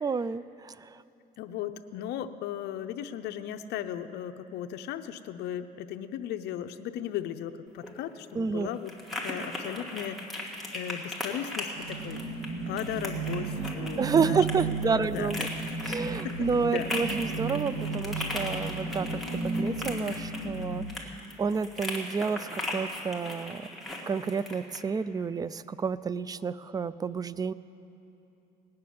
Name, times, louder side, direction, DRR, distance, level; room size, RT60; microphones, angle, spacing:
voice 1, 0.0-0.8 8.3-8.7 14.0-15.5 15.8-19.1 19.4-20.8 21.4-23.7 24.1-27.5, right 5 dB, 20° right, 17 dB, 0.4 m, -30 dB
voice 2, 1.4-8.9 9.2-10.2 10.7-12.2 12.7-14.4 14.8-15.7 16.2-16.9, left 10 dB, 80° left, 8 dB, 0.6 m, -36 dB
sound 1, 7.7-24.8, left 1 dB, ahead, 2.3 m, -38 dB
sound 2, 11.7-21.0, right 3 dB, 75° right, 2.4 m, -34 dB
18.5 x 6.7 x 9.4 m, 2.9 s
cardioid pair, 110°, 17 cm